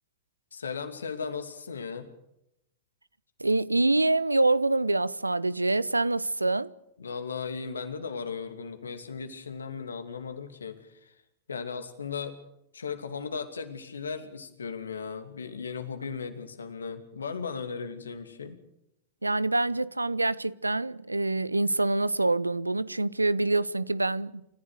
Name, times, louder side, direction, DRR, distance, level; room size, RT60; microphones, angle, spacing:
voice 1, 0.5-2.1 7.0-11.1 11.5-12.4 12.7-18.6, left 5 dB, 75° left, 2.6 m, -36 dB
voice 2, 3.4-6.7 19.2-24.3, right 2 dB, 85° right, 0.7 m, -26 dB
28.5 x 15.0 x 6.6 m
figure-of-eight pair, 90°, 0 cm